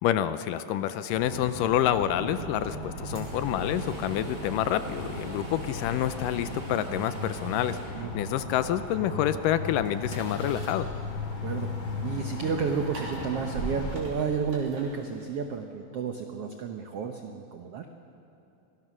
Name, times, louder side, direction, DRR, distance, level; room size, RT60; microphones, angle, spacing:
voice 1, 0.0-10.9, left 11 dB, 80° left, 12 dB, 2.0 m, -28 dB
sound 1, 1.1-14.0, left 2 dB, 35° left, 2.7 m, -37 dB
sound 2, 1.6-6.6, right 1 dB, 30° right, 1.4 m, -44 dB
sound 3, 3.1-15.6, right 1 dB, 60° right, 4.8 m, -44 dB
voice 2, 11.4-11.7 12.0-17.8, right 6 dB, 85° right, 5 dB, 1.3 m, -31 dB
25.5 x 19.0 x 6.2 m, 2.8 s
omnidirectional pair, 4.1 m